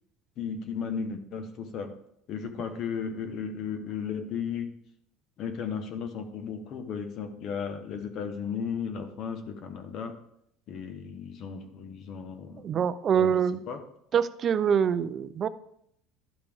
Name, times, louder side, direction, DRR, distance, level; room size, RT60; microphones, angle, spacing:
voice 1, 0.4-2.0 2.3-4.7 5.4-10.2 10.7-12.7 13.1-13.3 13.7-13.8, left 6 dB, 45° left, 8 dB, 0.9 m, -35 dB
voice 2, 12.6-13.6 14.1-15.5, right 7 dB, 30° right, 14 dB, 0.4 m, -25 dB
11.5 x 5.1 x 3.5 m, 0.73 s
cardioid pair, 150°, 0 cm